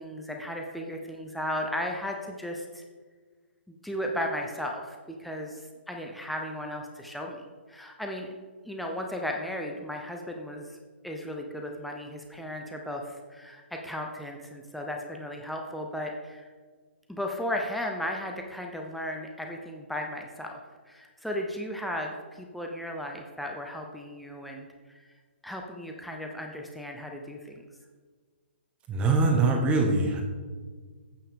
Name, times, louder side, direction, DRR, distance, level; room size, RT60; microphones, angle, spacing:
voice 1, 0.0-2.8 3.7-8.3 8.6-10.8 11.0-16.5 17.1-20.6 20.9-25.1 25.4-27.5, left 1 dB, ahead, 1 dB, 0.7 m, -35 dB
voice 2, 28.9-30.2, right 3 dB, 20° right, 3 dB, 1.0 m, -23 dB
8.7 x 7.0 x 3.6 m, 1.5 s
hypercardioid pair, 135°, 6 cm